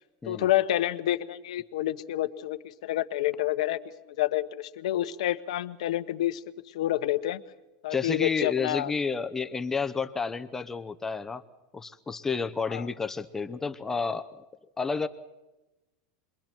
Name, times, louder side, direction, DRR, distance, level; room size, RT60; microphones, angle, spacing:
voice 1, 0.3-3.8 4.2-6.4 6.7-7.4 7.8-8.9 12.7-12.9, left 13 dB, 80° left, 9 dB, 1.2 m, -28 dB
voice 2, 7.9-11.4 11.7-14.4 14.8-15.1, left 5 dB, 10° left, 8 dB, 0.8 m, -30 dB
29.0 x 22.5 x 4.5 m, 1.1 s
supercardioid pair, 140°, 3 cm